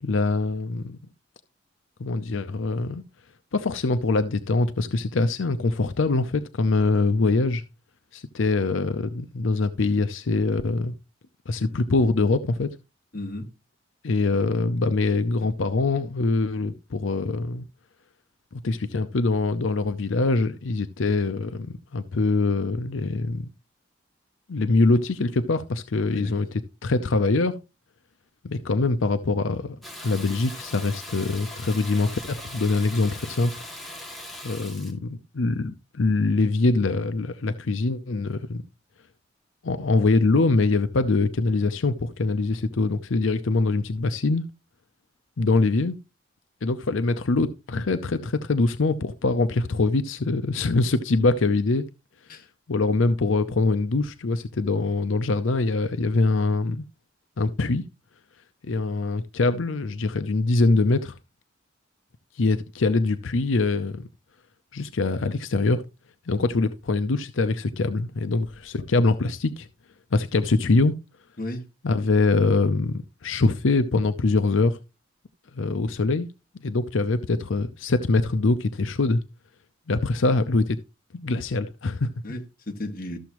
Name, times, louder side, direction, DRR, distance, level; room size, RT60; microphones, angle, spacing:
voice 1, 0.0-1.0 2.0-3.0 3.5-7.6 8.1-10.9 11.5-12.7 14.0-17.6 18.5-23.5 24.5-27.6 28.4-33.5 34.4-38.6 39.6-44.4 45.4-46.0 46.6-51.8 52.7-56.8 57.4-57.8 58.6-61.2 62.3-64.1 64.7-65.8 66.3-69.7 70.1-70.9 71.8-74.8 75.5-76.3 76.6-79.2 79.9-80.8 81.1-82.1, left 3 dB, 90° left, 0.6 m, -23 dB
voice 2, 13.1-13.4 15.4-15.5 26.1-26.3 52.3-52.5 71.4-71.7 82.2-83.2, left 1 dB, 45° left, 1.8 m, -34 dB
Water tap faucet / Bathtub (filling or washing), 29.8-34.9, left 1 dB, ahead, 2.2 m, -40 dB
13.5 x 7.0 x 3.0 m
head